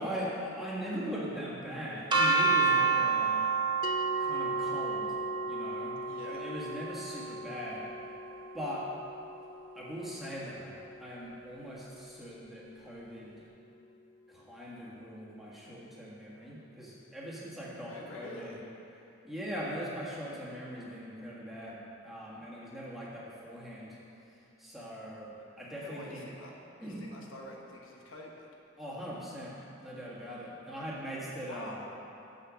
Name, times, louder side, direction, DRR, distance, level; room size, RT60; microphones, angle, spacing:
voice 1, 0.0-3.4 4.2-5.2 5.4-6.0 6.2-7.9 8.5-8.9 9.7-10.7 11.0-13.5 14.3-18.6 18.9-24.0 24.6-26.3 26.8-27.1 28.8-31.8, equal, ahead, -7 dB, 1.6 m, -40 dB
sound 1, 2.1-8.0, right 4 dB, 25° right, 1.0 m, -30 dB
sound 2, 3.8-14.4, left 3 dB, 45° left, 0.5 m, -43 dB
voice 2, 6.1-6.5 17.9-18.6 25.8-26.5 26.8-28.5 31.4-31.9, left 1 dB, 75° left, -1 dB, 1.2 m, -46 dB
7.8 x 6.6 x 6.2 m, 2.8 s
head